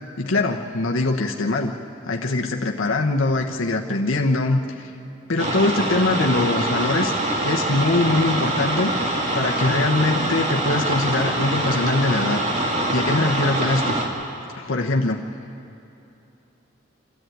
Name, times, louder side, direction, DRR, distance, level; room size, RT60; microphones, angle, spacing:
voice 1, 0.2-1.7 2.1-4.9 5.3-7.1 7.4-8.9 9.3-12.4 12.9-14.0 14.6-15.2, left 2 dB, 85° left, 1 dB, 1.1 m, -22 dB
sound 1, 5.4-14.1, right 1 dB, 35° right, 2.2 m, -24 dB
26.5 x 13.0 x 9.3 m, 2.9 s
head